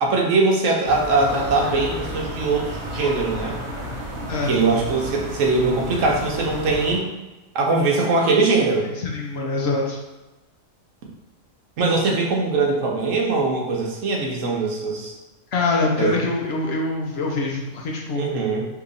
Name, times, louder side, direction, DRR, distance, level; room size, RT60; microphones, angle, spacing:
voice 1, 0.0-3.5 4.5-7.1 7.5-8.8 11.8-15.1 16.0-16.1 18.1-18.7, right 3 dB, 80° right, 0 dB, 1.1 m, -21 dB
sound 1, 0.8-7.0, equal, 50° right, 1.1 m, -31 dB
voice 2, 8.9-10.0 15.5-18.4, left 3 dB, 60° left, -1 dB, 0.8 m, -24 dB
2.9 x 2.7 x 3.7 m, 1.1 s
omnidirectional pair, 1.3 m